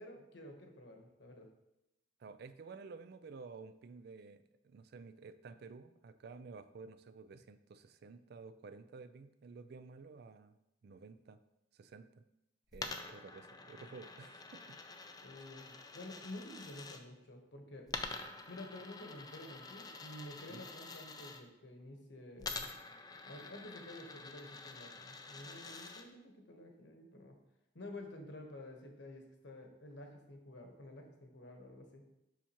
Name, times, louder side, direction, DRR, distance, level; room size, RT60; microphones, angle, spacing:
voice 1, 0.0-1.5 15.2-17.9 18.5-22.7 23.3-27.4 27.7-32.0, left 1 dB, 60° left, 3 dB, 1.1 m, -51 dB
voice 2, 2.2-10.6 10.8-11.4 11.7-12.2 12.7-14.8 20.5-20.7, right 4 dB, 55° right, 11 dB, 0.3 m, -52 dB
Coin (dropping), 12.7-17.0 17.9-21.4 22.4-26.0, left 3 dB, 20° left, 0.4 m, -47 dB
7.1 x 5.7 x 2.9 m, 0.88 s
head